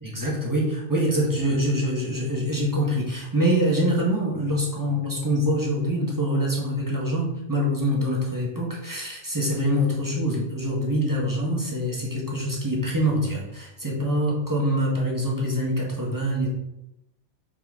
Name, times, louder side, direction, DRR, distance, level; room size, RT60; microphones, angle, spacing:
voice 1, 0.0-16.5, equal, 15° right, -4 dB, 1.4 m, -25 dB
5.9 x 4.5 x 3.7 m, 0.87 s
omnidirectional pair, 1.2 m